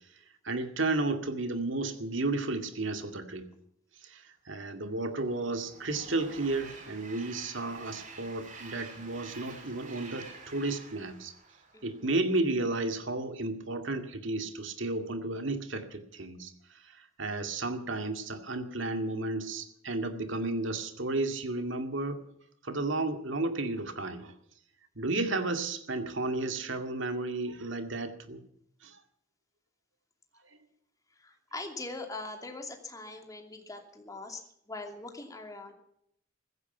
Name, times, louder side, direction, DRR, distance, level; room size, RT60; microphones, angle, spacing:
voice 1, 0.4-3.5 4.0-11.3 11.8-16.5 17.0-22.2 22.6-24.3 25.0-28.4 28.8-29.0, right 2 dB, 65° right, 7 dB, 2.2 m, -33 dB
Train, 4.9-12.3, right 4 dB, 40° right, 4.3 m, -49 dB
voice 2, 11.7-12.2 31.1-35.7, left 2 dB, 15° left, 4 dB, 2.7 m, -42 dB
15.5 x 14.5 x 5.7 m, 0.72 s
head